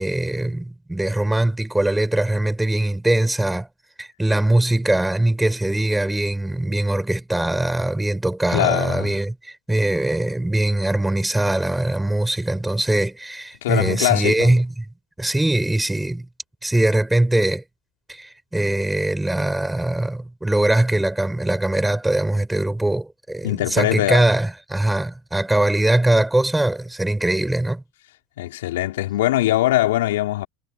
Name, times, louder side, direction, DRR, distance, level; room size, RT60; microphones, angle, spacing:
voice 1, 0.0-3.7 4.0-14.8 15.2-16.2 16.6-17.6 18.1-27.8, right 1 dB, 5° right, 6.4 m, -21 dB
voice 2, 8.5-9.1 13.6-14.5 23.4-24.3 28.4-30.5, left 15 dB, 80° left, 4.6 m, -21 dB
hypercardioid pair, 85°, 0 cm